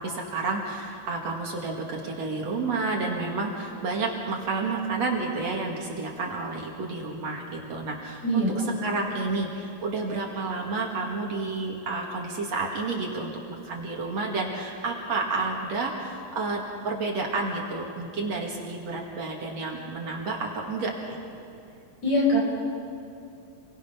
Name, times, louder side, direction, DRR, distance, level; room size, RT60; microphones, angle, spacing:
voice 1, 0.0-21.2, right 3 dB, 55° right, -1 dB, 3.1 m, -30 dB
voice 2, 8.2-8.7 22.0-22.4, left 1 dB, 55° left, -2 dB, 6.6 m, -23 dB
28.5 x 22.0 x 5.8 m, 2.5 s
omnidirectional pair, 3.9 m